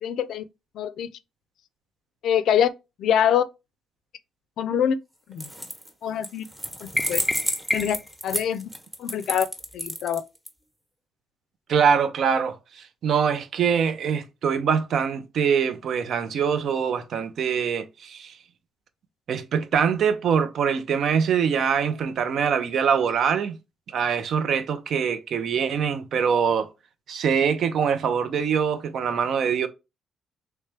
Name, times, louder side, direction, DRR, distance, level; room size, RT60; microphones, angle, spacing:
voice 1, 0.0-0.4 0.8-1.1 2.2-2.7 3.0-3.4 4.6-5.0 5.3-5.5 6.0-6.4 6.8-7.2 7.7-8.0 8.2-8.7 9.0-9.5 9.7-10.2, left 9 dB, 75° left, 0.4 m, -24 dB
sound 1, 5.3-5.9 6.2-10.5, equal, 15° right, 1.0 m, -31 dB
sound 2, 7.0-8.2, left 1 dB, 5° left, 0.4 m, -29 dB
voice 2, 11.7-18.4 19.3-23.6 23.9-26.7 27.1-29.7, right 7 dB, 65° right, 0.5 m, -24 dB
3.3 x 3.0 x 3.2 m
cardioid pair, 90°, 0 cm